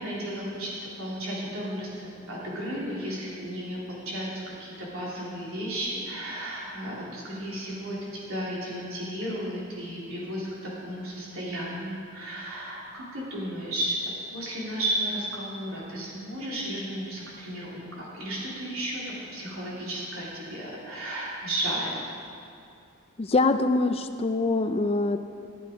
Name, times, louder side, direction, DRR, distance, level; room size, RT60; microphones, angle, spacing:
voice 1, 0.0-1.9 2.3-14.0 14.3-19.0 19.3-21.9, right 1 dB, 75° right, -6 dB, 3.5 m, -33 dB
voice 2, 23.2-25.2, left 3 dB, 30° left, 9 dB, 0.5 m, -24 dB
14.0 x 9.3 x 5.1 m, 2.5 s
head